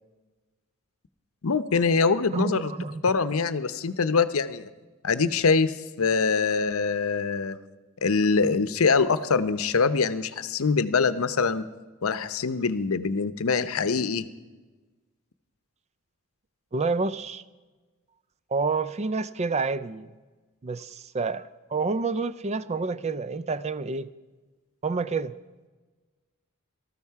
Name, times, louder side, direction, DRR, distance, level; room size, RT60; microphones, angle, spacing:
voice 1, 1.4-2.7 3.0-4.7 5.0-7.6 8.0-11.6 12.0-14.2, left 4 dB, 75° left, 0.7 m, -24 dB
voice 2, 2.3-3.0 16.7-17.4 18.5-20.1 20.6-24.1 24.8-25.3, right 4 dB, 30° right, 0.4 m, -28 dB
18.5 x 13.5 x 4.7 m
head